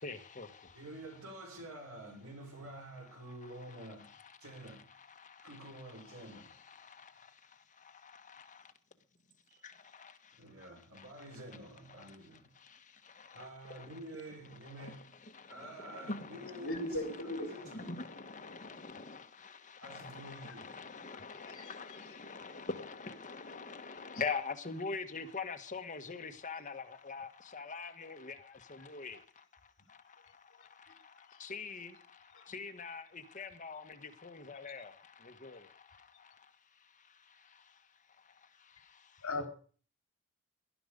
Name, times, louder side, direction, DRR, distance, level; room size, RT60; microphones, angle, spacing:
voice 1, 0.0-0.8 3.7-8.7 9.6-10.7 10.9-11.4 12.0-12.2 12.5-14.0 14.6-37.9 38.2-39.3, left 4 dB, 35° left, 1.5 m, -45 dB
voice 2, 0.7-4.1 4.4-4.9 5.4-6.6 9.5-9.6 10.3-12.5 13.3-15.0 15.5-18.0 18.6-18.7 19.8-20.8, right 1 dB, 70° right, 6.5 m, -49 dB
voice 3, 16.6-17.5 21.5-21.7 32.4-32.5 39.2-39.5, left 2 dB, 65° left, 3.8 m, -37 dB
18.5 x 12.0 x 5.3 m
head